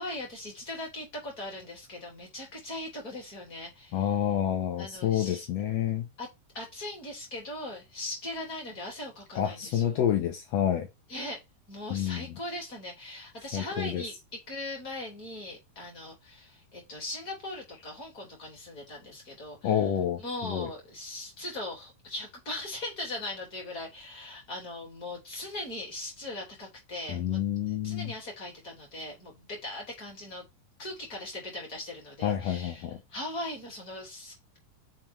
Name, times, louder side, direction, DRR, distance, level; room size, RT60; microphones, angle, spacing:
voice 1, 0.0-4.0 4.8-5.5 6.2-6.3 6.5-10.0 11.1-11.4 11.7-19.9 20.2-27.4 27.7-30.4 30.8-34.6, left 1 dB, 25° left, 3.1 m, -39 dB
voice 2, 3.9-6.1 9.3-10.9 11.9-12.4 13.5-14.0 19.6-20.7 27.1-28.1 32.2-33.0, left 10 dB, 75° left, 1.6 m, -28 dB
5.8 x 4.7 x 4.5 m
omnidirectional pair, 4.0 m